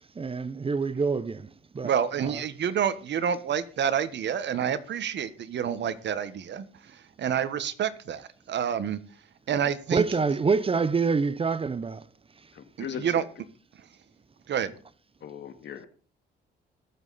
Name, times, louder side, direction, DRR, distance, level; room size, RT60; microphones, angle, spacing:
voice 1, 0.0-1.9 2.2-2.4 9.9-12.1 12.3-12.5, right 4 dB, 30° right, 0.8 m, -27 dB
voice 2, 1.8-9.0 9.5-10.0 12.8-13.2 14.5-14.7, right 8 dB, 65° right, 1.5 m, -28 dB
voice 3, 12.5-13.2 15.2-15.9, left 8 dB, 65° left, 2.2 m, -39 dB
21.5 x 7.6 x 4.2 m
cardioid pair, 90°, 20 cm